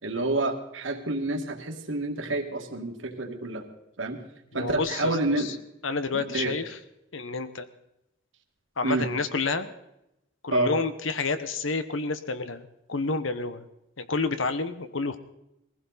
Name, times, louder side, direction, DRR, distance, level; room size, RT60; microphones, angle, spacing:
voice 1, 0.0-3.7 4.0-4.2 4.5-5.5 6.1-6.5 8.8-9.1 10.5-10.7, right 2 dB, 80° right, 2 dB, 2.0 m, -28 dB
voice 2, 4.5-5.5 5.8-6.6 7.1-7.7 8.8-9.7 10.4-13.6 14.0-15.2, left 3 dB, 85° left, 11 dB, 1.1 m, -29 dB
21.0 x 15.5 x 4.2 m, 0.86 s
head